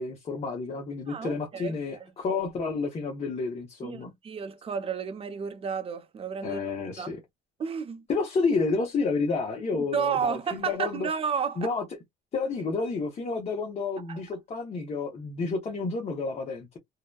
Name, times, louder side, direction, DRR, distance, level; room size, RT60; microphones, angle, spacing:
voice 1, 0.0-4.1 6.4-7.2 8.1-11.1 11.6-11.8 12.3-16.8, left 4 dB, 40° left, 0.8 m, -30 dB
voice 2, 1.1-2.1 3.8-6.6 7.0-7.1 7.6-8.0 9.7-11.7 14.1-14.2, right 6 dB, 35° right, 0.7 m, -32 dB
2.7 x 2.1 x 2.2 m
cardioid pair, 110°, 17 cm